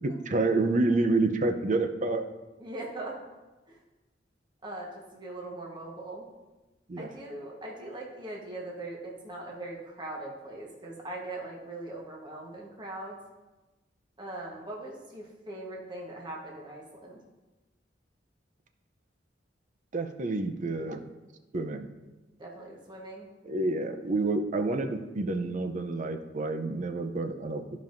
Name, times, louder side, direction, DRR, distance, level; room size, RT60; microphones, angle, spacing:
voice 1, 0.0-2.2 6.9-7.1 19.9-21.1 21.5-21.9 23.4-27.6, right 2 dB, 45° right, 7 dB, 0.6 m, -28 dB
voice 2, 2.6-3.2 3.7-3.8 4.6-6.3 7.0-13.2 14.2-17.2 22.4-23.3, right 2 dB, 25° right, -3 dB, 1.2 m, -40 dB
14.0 x 5.3 x 2.6 m, 1.1 s
head